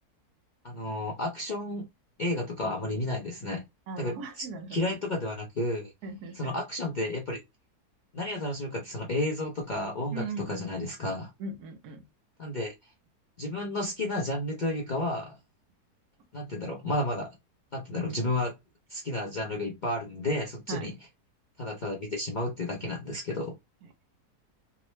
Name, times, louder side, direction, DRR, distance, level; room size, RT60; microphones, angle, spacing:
voice 1, 0.6-1.9 2.2-3.6 4.0-5.9 6.3-7.4 8.1-11.3 12.4-12.7 13.4-15.4 16.3-17.3 17.7-18.5 18.9-20.9 21.6-23.5, left 1 dB, 55° left, 0.5 m, -32 dB
voice 2, 3.9-4.9 6.0-6.5 10.1-10.7 11.4-12.1 20.7-20.9, right 3 dB, 75° right, 1.2 m, -38 dB
3.6 x 2.0 x 3.0 m
omnidirectional pair, 1.7 m